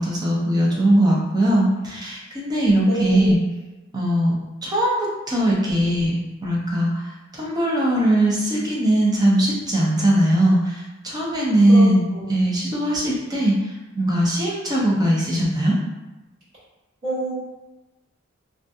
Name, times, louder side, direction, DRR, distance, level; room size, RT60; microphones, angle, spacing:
voice 1, 0.0-3.4 3.9-4.3 4.6-6.1 6.4-7.0 7.3-12.0 12.3-13.6 13.9-15.8, right 1 dB, 20° right, -4 dB, 0.6 m, -20 dB
voice 2, 2.9-3.4 11.7-12.3 17.0-17.3, right 1 dB, 45° right, -13 dB, 1.4 m, -27 dB
2.5 x 2.2 x 2.6 m, 1.1 s
head